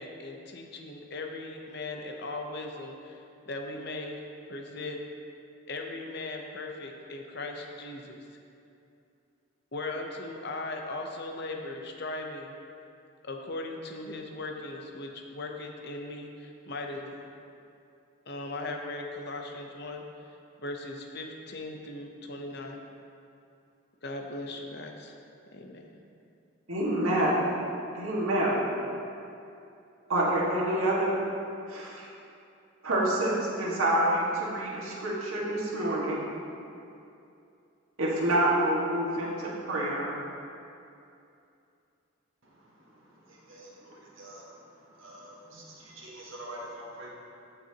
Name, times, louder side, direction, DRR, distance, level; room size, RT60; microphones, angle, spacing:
voice 1, 0.0-3.2 3.5-4.2 4.5-5.0 5.7-8.2 9.7-12.5 13.2-17.2 18.3-20.0 20.6-22.8 24.0-25.1 25.5-25.9, left 2 dB, 50° left, 2 dB, 0.8 m, -38 dB
voice 2, 26.7-27.4 27.9-28.6 30.1-31.1 31.7-32.1 32.8-36.2 38.0-40.1, right 1 dB, 90° right, -5 dB, 1.8 m, -27 dB
voice 3, 42.9-44.6 44.9-47.1, right 1 dB, 70° right, -4 dB, 1.7 m, -46 dB
15.0 x 5.7 x 2.9 m, 2.6 s
head